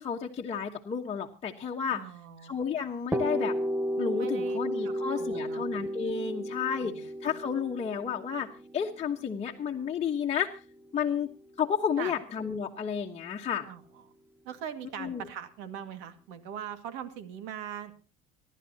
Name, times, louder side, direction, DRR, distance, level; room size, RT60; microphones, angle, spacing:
voice 1, 0.0-2.0 2.4-3.5 4.0-10.5 10.9-11.3 11.6-13.7 15.0-15.2, left 7 dB, 30° left, -1 dB, 1.2 m, -32 dB
voice 2, 1.9-2.5 4.1-5.7 6.8-7.0 12.0-12.1 13.7-14.0 14.4-17.9, right 9 dB, 80° right, 9 dB, 2.1 m, -41 dB
sound 1, 3.1-10.8, equal, 10° right, 0.9 m, -33 dB
29.5 x 11.5 x 2.9 m, 0.33 s
cardioid pair, 110°, 20 cm